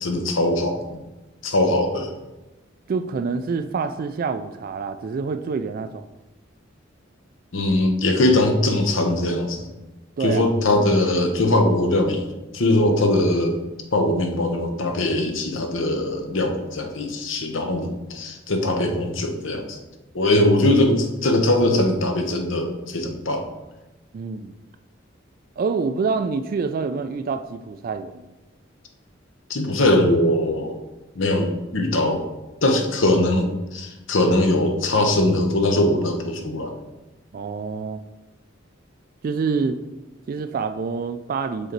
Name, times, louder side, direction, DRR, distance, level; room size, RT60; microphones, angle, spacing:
voice 1, 0.0-0.8 1.4-2.1 7.5-9.7 10.2-12.2 12.5-13.6 13.9-19.8 20.1-23.4 29.5-30.8 31.2-32.2 32.6-36.8, left 1 dB, 75° left, 4 dB, 0.9 m, -21 dB
voice 2, 2.9-6.1 10.2-10.5 24.1-24.5 25.6-28.3 37.3-38.0 39.2-39.8 40.3-41.7, right 5 dB, 45° right, 9 dB, 0.3 m, -26 dB
6.5 x 3.9 x 4.5 m, 1.0 s
head